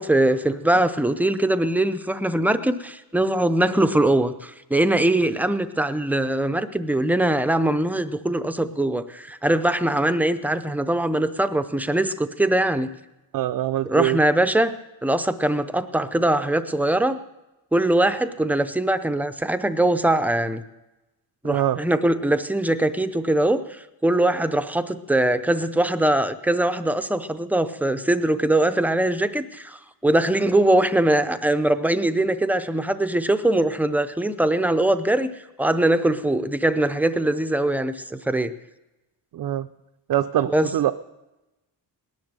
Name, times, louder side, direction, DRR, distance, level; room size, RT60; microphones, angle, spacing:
voice 1, 0.0-12.9 13.8-14.7 15.0-17.2 17.7-20.6 21.4-35.3 35.6-38.5 40.5-40.7, right 1 dB, 5° right, 11 dB, 0.5 m, -22 dB
voice 2, 13.3-14.2 21.4-21.8 39.3-39.7 40.1-40.9, right 12 dB, 50° right, 9 dB, 0.5 m, -23 dB
19.0 x 10.5 x 6.7 m, 1.0 s
wide cardioid pair, 165°, 44 cm